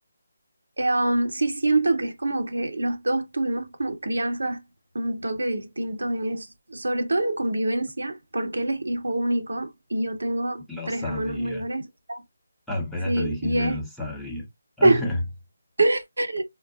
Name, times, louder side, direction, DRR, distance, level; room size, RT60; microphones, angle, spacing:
voice 1, 0.8-4.6 4.9-12.2 13.1-13.8 14.8-15.1 15.8-16.4, right 2 dB, 90° right, 0.8 m, -25 dB
voice 2, 10.7-11.6 12.7-14.5 14.8-15.2, left 1 dB, ahead, 0.8 m, -31 dB
4.5 x 2.1 x 2.4 m
figure-of-eight pair, 160°, 0 cm